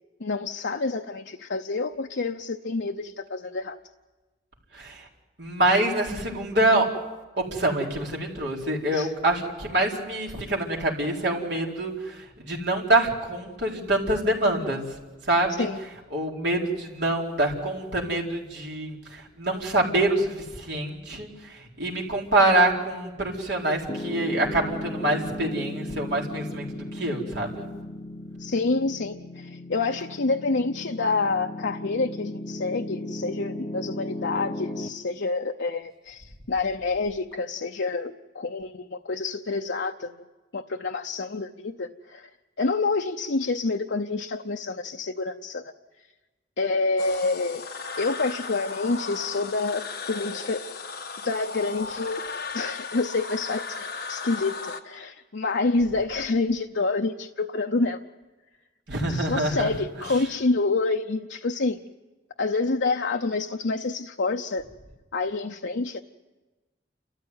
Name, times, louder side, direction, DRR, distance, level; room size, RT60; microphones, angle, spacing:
voice 1, 0.2-3.8 8.9-9.1 15.6-15.8 28.4-40.1 40.5-42.3 42.6-45.6 46.6-47.6 48.0-50.6 51.2-52.2 52.5-58.0 59.1-61.8 62.4-64.6 65.1-66.0, left 3 dB, 75° left, 4 dB, 0.7 m, -28 dB
voice 2, 4.7-5.1 5.4-6.9 7.4-14.8 15.2-15.7 16.1-26.7 26.9-27.7 58.9-59.7, right 1 dB, 70° right, -1 dB, 4.3 m, -25 dB
Piano, 23.9-34.9, left 1 dB, 30° left, 0.8 m, -36 dB
sound 1, 47.0-54.8, left 4 dB, 60° left, 1.4 m, -36 dB
29.5 x 14.0 x 9.5 m, 1.2 s
head